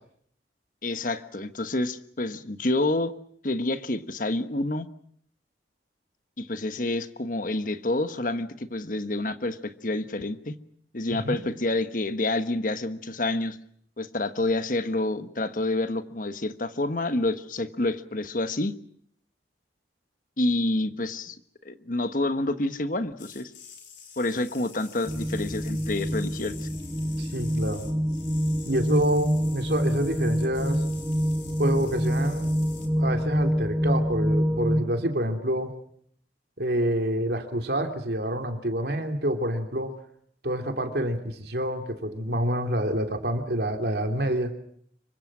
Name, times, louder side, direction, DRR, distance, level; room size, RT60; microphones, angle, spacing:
voice 1, 0.8-3.1 3.4-4.9 6.4-10.5 10.9-13.6 14.0-18.7 20.4-21.4 21.6-23.5 24.2-26.7, left 2 dB, 45° left, 10 dB, 1.3 m, -28 dB
voice 2, 11.1-11.4 27.2-27.8 28.6-30.8 31.6-32.5 33.0-35.7 36.6-39.9 40.4-44.5, right 1 dB, 60° right, 4 dB, 3.1 m, -27 dB
sound 1, 23.2-32.9, left 7 dB, 80° left, 4.4 m, -47 dB
sound 2, 25.1-34.8, equal, 15° right, 1.3 m, -26 dB
26.0 x 24.0 x 6.2 m, 0.64 s
head